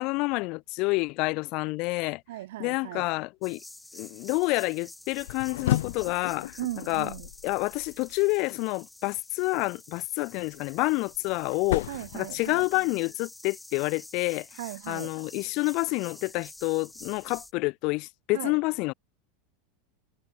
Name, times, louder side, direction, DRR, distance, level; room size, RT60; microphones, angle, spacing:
voice 1, 0.0-2.2 2.6-3.6 3.9-6.6 6.9-7.1 7.4-14.5 14.9-18.9, left 25 dB, 55° left, 0.5 m, -28 dB
voice 2, 2.3-3.1 6.6-7.3 11.9-12.6 14.6-15.1 18.3-18.6, right 16 dB, 75° right, 2.1 m, -37 dB
sound 1, 3.4-17.5, left 2 dB, 5° left, 2.9 m, -49 dB
sound 2, 5.1-8.2 10.4-13.0, left 14 dB, 80° left, 1.6 m, -34 dB
hypercardioid pair, 105°, 0 cm